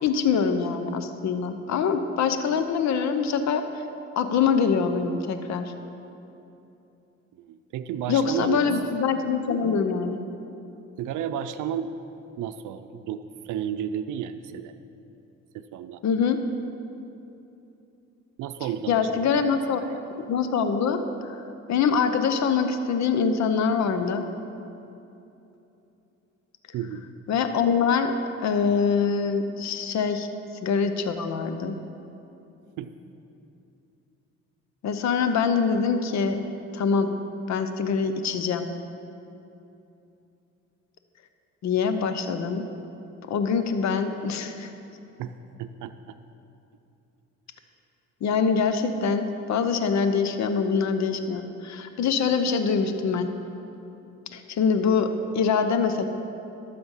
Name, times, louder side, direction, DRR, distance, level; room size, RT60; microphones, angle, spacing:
voice 1, 0.0-3.6 4.2-5.7 8.1-10.2 16.0-16.4 18.9-19.8 20.2-21.0 21.7-24.2 27.3-30.3 30.6-31.7 34.8-36.4 36.7-37.1 37.5-38.7 41.6-42.7 43.3-44.7 48.2-53.3 54.3-56.0, left 6 dB, 65° left, 9 dB, 0.8 m, -24 dB
voice 2, 7.3-8.7 11.0-11.9 12.4-14.7 15.5-16.0 18.4-20.0 26.7-27.1 32.8-32.9 45.2-45.3 45.6-46.1, right 9 dB, 80° right, 9 dB, 0.6 m, -32 dB
12.5 x 6.9 x 5.6 m, 2.8 s
cardioid pair, 90°, 30 cm